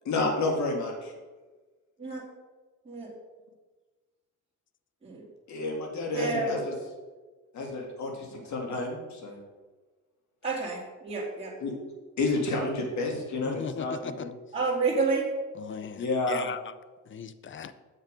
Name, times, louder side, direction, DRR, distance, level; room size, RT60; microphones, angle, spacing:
voice 1, 0.0-1.1 5.5-6.7 7.5-9.4 11.6-11.7 12.2-14.3 16.0-16.5, left 2 dB, 65° left, 1 dB, 2.3 m, -30 dB
voice 2, 2.0-2.3 2.9-3.1 5.0-5.3 6.1-6.6 10.4-11.5 14.5-15.3, right 3 dB, 20° right, -5 dB, 2.3 m, -29 dB
voice 3, 13.4-14.3 15.5-16.7 17.1-17.7, left 7 dB, 40° left, 14 dB, 0.6 m, -38 dB
7.5 x 6.7 x 5.2 m, 1.3 s
cardioid pair, 90°, 30 cm